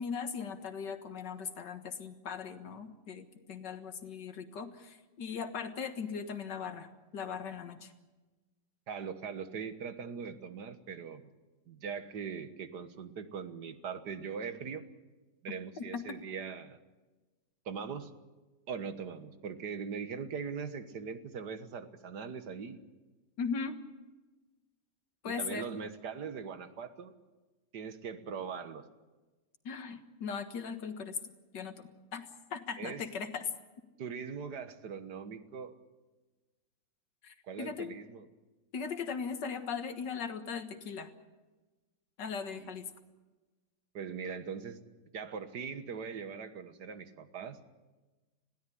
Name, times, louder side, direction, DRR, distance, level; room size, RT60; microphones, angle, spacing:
voice 1, 0.0-7.9 15.5-16.0 23.4-23.8 25.2-25.7 29.7-31.2 31.5-33.5 37.2-37.9 38.7-41.1 42.2-42.9, left 6 dB, 90° left, 8 dB, 2.2 m, -39 dB
voice 2, 8.9-11.3 11.7-14.8 15.4-16.8 17.7-18.1 18.7-22.8 25.2-27.1 27.7-28.8 32.8-33.0 34.0-35.8 37.4-38.3 42.5-42.7 43.9-44.8 45.1-47.6, right 6 dB, 70° right, 10 dB, 1.9 m, -41 dB
21.0 x 16.0 x 10.0 m, 1.2 s
omnidirectional pair, 1.8 m